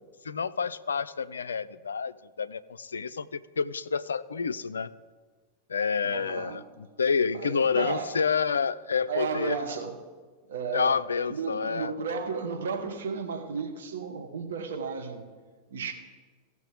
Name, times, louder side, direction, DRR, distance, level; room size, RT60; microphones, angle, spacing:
voice 1, 0.2-4.9 5.7-9.6 10.7-11.9, left 6 dB, 70° left, 15 dB, 0.3 m, -29 dB
voice 2, 6.0-6.7 7.3-8.2 9.1-10.0 10.5-11.0 11.3-15.3 15.7-15.9, right 5 dB, 60° right, 4 dB, 1.1 m, -33 dB
16.5 x 6.1 x 3.7 m, 1.4 s
figure-of-eight pair, 90°, 0 cm